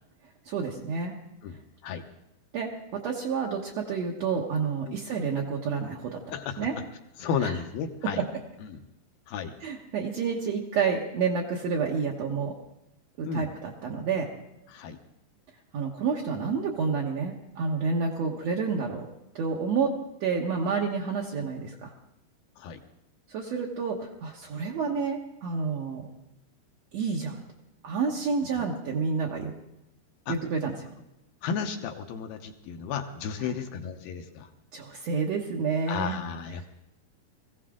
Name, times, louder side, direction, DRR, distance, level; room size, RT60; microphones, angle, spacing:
voice 1, 0.4-1.2 2.5-6.2 6.6-6.7 7.4-7.5 9.6-12.5 13.2-14.3 15.7-19.1 19.3-19.9 20.2-21.9 23.3-26.1 26.9-27.4 27.8-29.5 30.3-30.7 34.7-36.2, right 5 dB, 65° right, -2 dB, 1.7 m, -29 dB
voice 2, 6.3-6.7 7.2-8.2 8.6-8.8 9.3-9.6 13.2-13.5 14.7-15.0 18.2-18.4 22.6-22.8 28.5-28.6 30.3-30.4 31.4-34.5 35.9-36.6, left 6 dB, 75° left, 5 dB, 2.4 m, -33 dB
21.5 x 16.0 x 3.8 m, 0.89 s
omnidirectional pair, 4.7 m